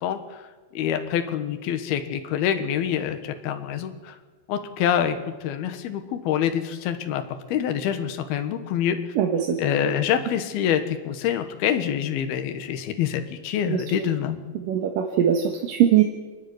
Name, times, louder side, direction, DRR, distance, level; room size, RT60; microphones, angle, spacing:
voice 1, 0.0-0.5 0.7-4.1 4.5-7.2 7.5-9.0 9.6-14.4, left 9 dB, 70° left, 7 dB, 3.3 m, -26 dB
voice 2, 9.2-9.6 13.7-14.1 14.5-16.0, right 9 dB, 65° right, 3 dB, 2.8 m, -21 dB
28.5 x 11.0 x 10.0 m, 1.3 s
omnidirectional pair, 4.7 m